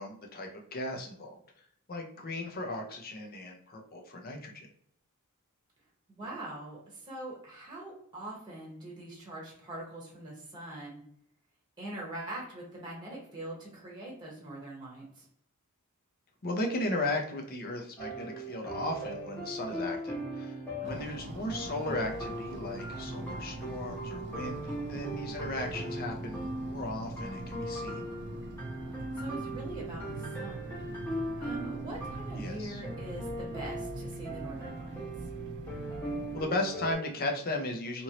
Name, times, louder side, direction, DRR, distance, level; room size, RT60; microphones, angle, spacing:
voice 1, 0.0-1.4 1.9-4.7 16.4-20.6 20.8-28.0 32.4-32.8 36.3-38.0, left 2 dB, 40° left, 2 dB, 0.6 m, -36 dB
voice 2, 6.1-11.0 11.8-15.3 20.8-21.3 29.2-35.0, right 1 dB, 20° right, -3 dB, 0.9 m, -43 dB
sound 1, 18.0-36.9, right 1 dB, 10° left, 0.9 m, -39 dB
sound 2, 20.8-36.5, right 2 dB, 55° right, 0.3 m, -43 dB
2.9 x 2.6 x 2.8 m, 0.69 s
head